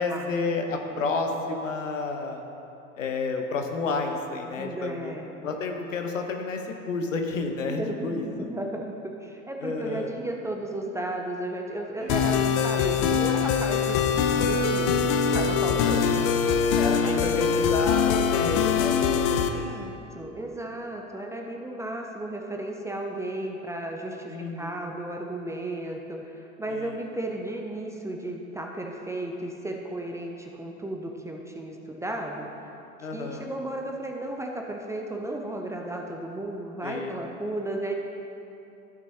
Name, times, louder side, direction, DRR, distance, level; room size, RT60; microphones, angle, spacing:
voice 1, 0.0-2.4 3.0-5.1 5.4-8.5 9.6-10.1 15.7-16.0 16.8-19.8 24.3-25.0 26.7-27.0 33.0-33.5 36.8-37.2, left 4 dB, 75° left, 4 dB, 1.0 m, -31 dB
voice 2, 0.7-1.1 4.6-5.3 7.7-16.3 16.8-17.6 19.0-32.5 33.1-37.9, right 1 dB, 10° right, 1 dB, 0.5 m, -34 dB
sound 1, 12.0-19.7, right 2 dB, 45° right, 1.7 m, -43 dB
sound 2, 12.1-19.5, left 6 dB, 35° left, 0.6 m, -23 dB
14.0 x 6.1 x 2.8 m, 2.8 s
figure-of-eight pair, 80°, 39 cm